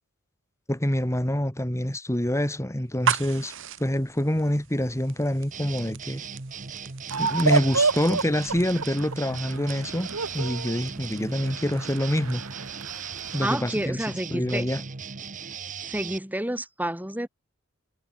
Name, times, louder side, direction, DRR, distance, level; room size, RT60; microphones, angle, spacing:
voice 1, 0.7-3.5 3.8-6.2 7.2-10.1 10.3-12.4 13.3-14.0 14.3-14.8, equal, 15° left, 2.5 m, -26 dB
sound 1, 2.8-12.6, right 7 dB, 65° right, 2.4 m, -37 dB
sound 2, 5.5-16.2, right 6 dB, 35° right, 1.2 m, -38 dB
sound 3, 7.1-13.5, right 4 dB, 85° right, 2.0 m, -30 dB
voice 2, 13.4-14.6 15.9-17.3, right 1 dB, 10° right, 3.8 m, -29 dB
head